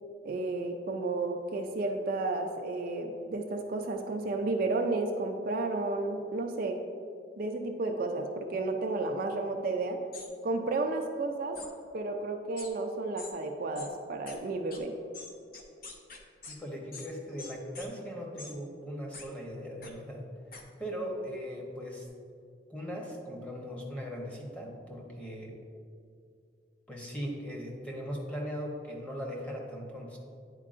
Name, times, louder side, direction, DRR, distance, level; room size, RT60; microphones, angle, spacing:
voice 1, 0.2-6.8 7.4-10.0 10.4-11.6 11.9-14.9, right 3 dB, 50° right, 3 dB, 0.4 m, -32 dB
sound 1, 10.1-10.3 11.5-11.7 12.6-12.7 13.2-13.3 13.7-13.9 14.3-14.4 14.7-14.8 15.1-16.6 16.9-17.1 17.4-17.9 18.4-18.5 19.1-19.3 19.8-19.9 20.5-20.6, left 3 dB, 55° left, 0.7 m, -45 dB
voice 2, 16.5-20.2 20.8-22.1 22.7-25.5 26.9-30.2, equal, 5° left, -2 dB, 0.9 m, -39 dB
9.7 x 4.5 x 2.5 m, 2.3 s
head